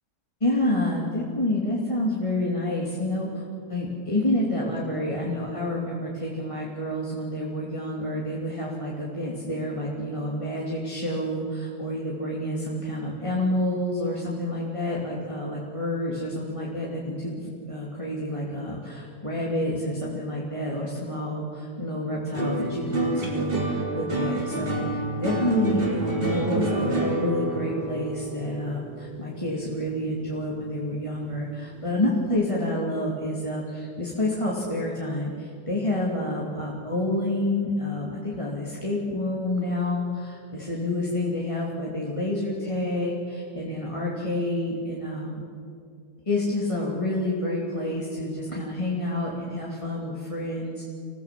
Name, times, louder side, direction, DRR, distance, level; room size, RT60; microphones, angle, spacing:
voice 1, 0.4-45.4 46.3-50.8, left 1 dB, 20° left, -5 dB, 2.8 m, -28 dB
sound 1, 22.3-30.8 31.1-31.8, right 2 dB, 30° right, 3.5 m, -28 dB
26.5 x 17.0 x 7.7 m, 2.3 s
omnidirectional pair, 1.8 m